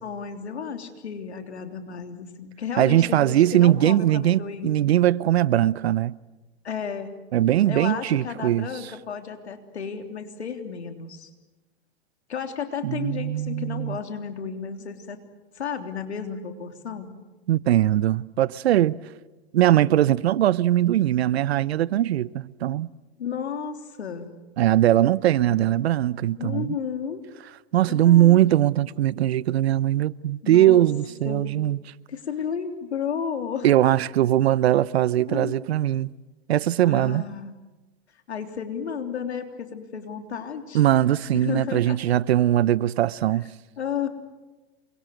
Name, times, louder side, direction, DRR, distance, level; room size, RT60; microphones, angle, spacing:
voice 1, 0.0-4.8 6.6-7.2 7.7-11.3 12.3-15.2 15.5-17.1 23.2-24.3 25.4-25.9 26.4-27.2 27.9-28.4 30.4-30.9 31.2-31.5 32.1-33.7 35.3-35.7 36.8-37.6 38.3-40.8 41.3-42.0 43.8-44.1, left 7 dB, 90° left, 3.5 m, -33 dB
voice 2, 2.8-6.1 7.3-8.7 12.8-14.0 17.5-19.0 19.5-22.9 24.6-26.7 27.7-31.8 33.6-36.1 36.5-37.2 40.7-43.5, right 13 dB, 75° right, 0.9 m, -20 dB
28.5 x 23.5 x 7.9 m
hypercardioid pair, 120°, 32 cm